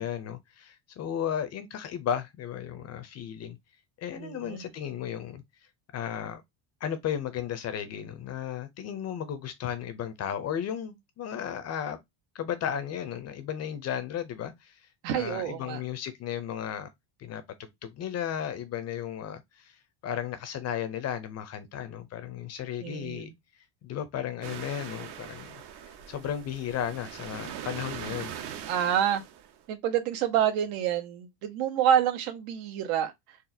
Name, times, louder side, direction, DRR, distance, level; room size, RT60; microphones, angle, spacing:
voice 1, 0.0-3.6 4.0-5.4 5.9-6.4 6.8-12.0 12.3-14.8 15.1-16.9 17.2-19.7 20.0-23.3 23.8-25.6 25.8-28.4, left 9 dB, 35° left, 0.4 m, -34 dB
voice 2, 4.2-4.7 15.0-15.8 22.8-23.3 28.7-29.2 29.7-33.1, right 9 dB, 80° right, 1.0 m, -27 dB
sound 1, 24.4-29.6, right 9 dB, 55° right, 0.7 m, -41 dB
4.0 x 2.4 x 2.6 m
cardioid pair, 155°, 48 cm